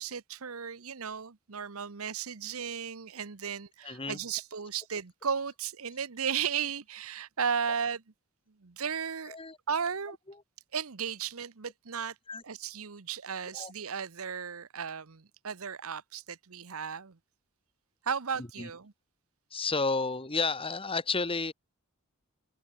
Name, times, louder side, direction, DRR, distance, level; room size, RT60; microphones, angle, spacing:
voice 1, 0.0-8.0 8.6-9.4 9.7-10.2 10.7-12.1 12.4-17.2 18.0-18.9, right 7 dB, 70° right, 1.0 m, -35 dB
voice 2, 3.8-4.2 9.3-9.6 12.3-12.4 13.5-13.7 18.4-18.7 19.5-21.5, left 4 dB, 25° left, 2.1 m, -31 dB
open air
head